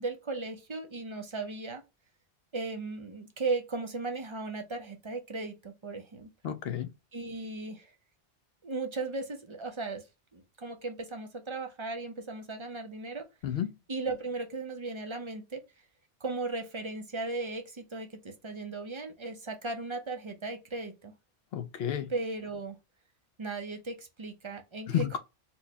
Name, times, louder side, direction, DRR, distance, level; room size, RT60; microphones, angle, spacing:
voice 1, 0.0-1.8 2.5-6.3 7.1-7.9 8.6-10.0 10.3-13.2 13.9-15.6 16.2-21.1 22.1-22.8 23.4-25.2, right 3 dB, 40° right, 0.5 m, -36 dB
voice 2, 6.4-6.9 13.4-13.7 21.5-22.1 24.9-25.2, left 10 dB, 70° left, 0.8 m, -31 dB
4.4 x 2.1 x 2.7 m
omnidirectional pair, 1.1 m